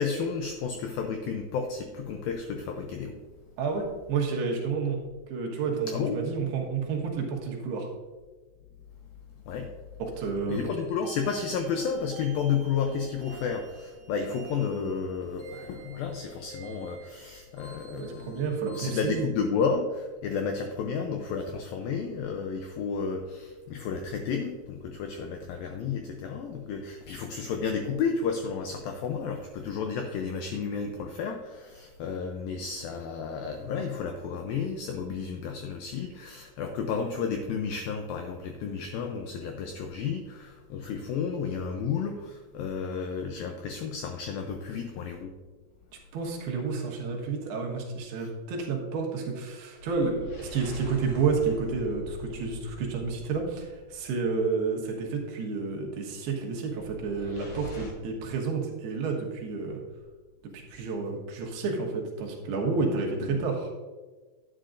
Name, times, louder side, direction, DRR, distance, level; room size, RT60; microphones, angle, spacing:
voice 1, 0.0-3.2 5.9-6.2 9.5-9.7 10.5-18.4 18.8-45.3 63.3-63.4, left 6 dB, 85° left, 4 dB, 2.1 m, -32 dB
voice 2, 3.6-5.0 5.3-7.9 10.0-10.6 17.9-19.2 46.1-59.8 60.5-63.7, right 4 dB, 75° right, 0 dB, 3.2 m, -30 dB
sound 1, 10.5-19.2, right 4 dB, 30° right, 2.6 m, -50 dB
sound 2, 47.1-47.3 49.8-54.3 56.7-57.9, left 1 dB, 60° left, 4.1 m, -43 dB
10.0 x 10.0 x 2.5 m, 1.3 s
omnidirectional pair, 4.9 m